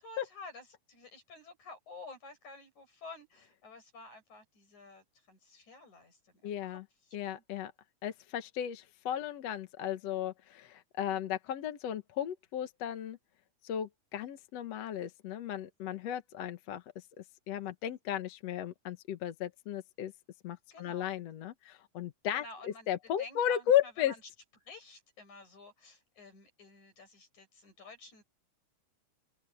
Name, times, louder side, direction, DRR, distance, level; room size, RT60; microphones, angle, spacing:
voice 1, 0.0-7.4 20.7-21.2 22.3-22.9 23.2-24.2 24.7-28.2, left 3 dB, 90° left, 8.9 m, -51 dB
voice 2, 6.4-6.8 7.1-7.7 8.0-13.2 13.6-16.8 17.5-20.1 20.4-24.1, left 10 dB, 65° left, 2.3 m, -35 dB
open air
omnidirectional pair, 3.3 m